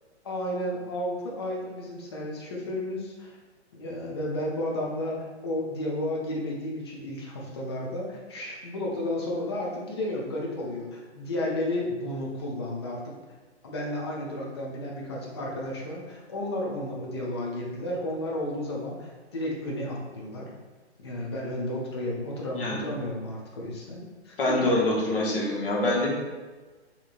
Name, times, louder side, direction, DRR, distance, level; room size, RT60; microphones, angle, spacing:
voice 1, 0.2-3.4 3.7-13.2 13.6-20.5 21.0-24.7, left 1 dB, 25° left, -3 dB, 0.4 m, -32 dB
voice 2, 24.4-26.1, left 1 dB, 50° left, -4 dB, 1.0 m, -25 dB
3.5 x 2.9 x 2.4 m, 1.3 s
figure-of-eight pair, 125°, 35 cm